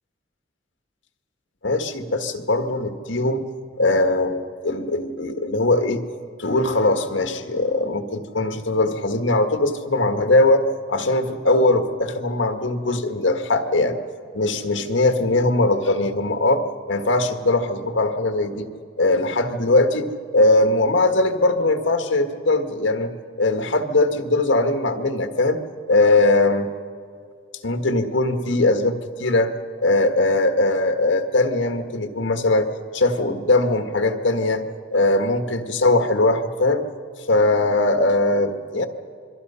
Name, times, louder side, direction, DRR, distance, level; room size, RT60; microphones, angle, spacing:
voice 1, 1.6-3.4 3.8-6.0 6.4-14.0 14.3-18.7 19.0-23.1 23.4-25.6 25.9-26.7 27.6-29.5 29.8-32.7 32.9-34.6 34.9-36.8 37.3-38.9, left 2 dB, 85° left, 6 dB, 1.6 m, -20 dB
27.0 x 23.0 x 5.6 m, 2.3 s
head